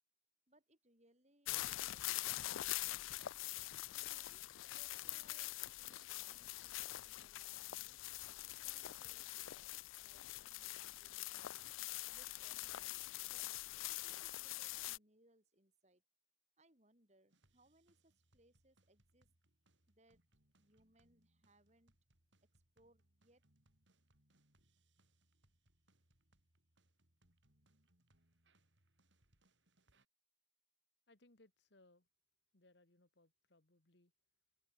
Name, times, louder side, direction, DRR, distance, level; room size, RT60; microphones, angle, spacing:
voice 1, 0.5-3.3 3.9-8.0 8.6-11.6 12.1-13.5 13.8-16.0 16.6-19.3 19.9-20.2 20.6-22.0 22.4-23.4, right 1 dB, 35° right, 7.7 m, -73 dB
sound 1, 1.5-15.0, left 17 dB, 85° left, 0.4 m, -44 dB
sound 2, 17.3-30.0, right 1 dB, 70° right, 6.0 m, -77 dB
voice 2, 31.1-32.1 32.5-34.1, left 2 dB, 60° left, 2.0 m, -69 dB
head